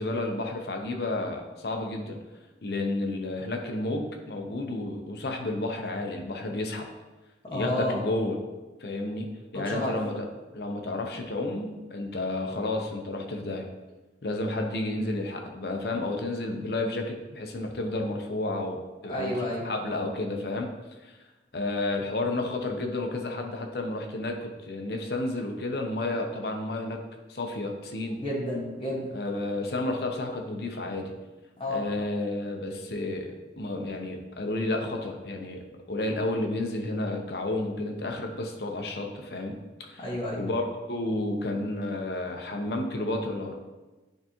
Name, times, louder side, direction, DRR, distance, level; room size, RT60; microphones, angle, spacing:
voice 1, 0.0-2.2 2.6-6.9 7.5-8.4 8.8-10.1 10.5-13.7 14.2-19.4 19.6-20.7 21.0-21.2 21.5-27.0 27.3-28.2 29.1-31.1 31.7-39.5 39.8-40.0 40.4-43.5, left 2 dB, 60° left, 3 dB, 0.7 m, -31 dB
voice 2, 7.4-8.0 9.5-10.0 19.1-19.6 28.2-29.1 31.6-31.8 40.0-40.4, left 1 dB, 30° left, -5 dB, 1.5 m, -30 dB
9.2 x 3.5 x 3.0 m, 1.2 s
head